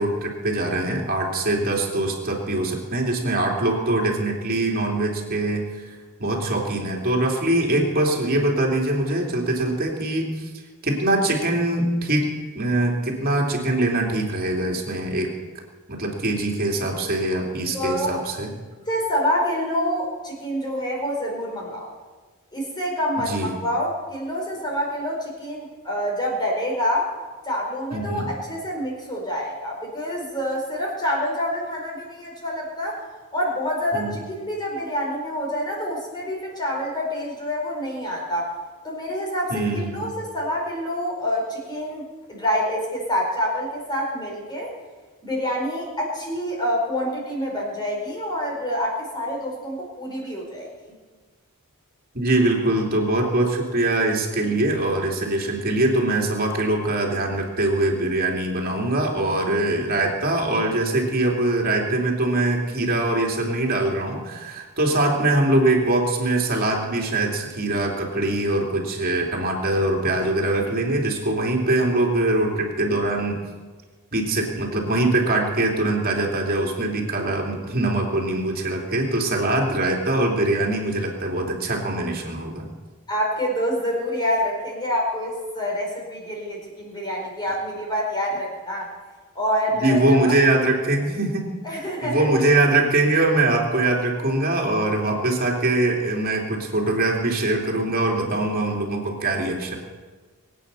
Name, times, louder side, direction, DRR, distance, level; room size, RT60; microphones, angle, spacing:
voice 1, 0.0-5.9 6.2-10.5 10.8-12.3 12.5-15.3 15.9-18.5 23.3-23.5 27.9-28.3 33.9-34.1 39.5-40.1 52.1-73.3 74.1-82.7 89.7-91.5 92.0-99.8, right 2 dB, 40° right, 0 dB, 3.1 m, -23 dB
voice 2, 17.7-18.1 18.9-21.9 22.5-27.1 27.4-33.0 33.3-38.5 38.8-44.7 45.2-51.0 83.1-88.9 89.3-90.3 91.6-92.3, equal, 20° left, -2 dB, 4.8 m, -27 dB
23.0 x 9.1 x 7.0 m, 1.4 s
head